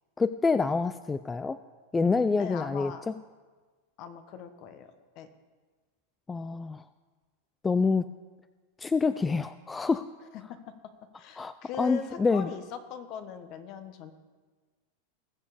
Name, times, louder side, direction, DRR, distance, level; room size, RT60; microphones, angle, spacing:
voice 1, 0.2-1.6 1.9-3.1 6.3-6.8 7.6-8.0 8.8-10.1 11.4-12.5, left 4 dB, 15° left, 13 dB, 0.3 m, -27 dB
voice 2, 2.4-3.0 4.0-4.9 5.1-5.3 10.3-10.7 11.2-14.1, left 7 dB, 50° left, 10 dB, 1.2 m, -40 dB
19.5 x 7.0 x 5.0 m, 1.4 s
supercardioid pair, 125°, 0 cm